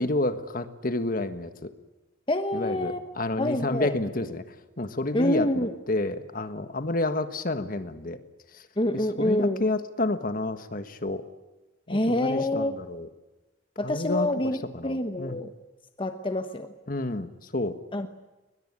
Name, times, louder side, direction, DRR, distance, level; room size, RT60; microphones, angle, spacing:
voice 1, 0.0-1.7 2.5-4.4 4.8-8.2 9.2-11.2 11.9-13.1 13.8-14.3 14.7-15.4 16.9-17.8, left 2 dB, 50° left, 10 dB, 1.5 m, -29 dB
voice 2, 2.3-3.0 3.4-3.9 5.1-5.8 8.8-9.6 11.9-12.7 13.8-15.5 16.0-16.7 17.9-18.1, left 1 dB, 25° left, 7 dB, 1.1 m, -27 dB
21.5 x 21.0 x 9.8 m, 1.1 s
head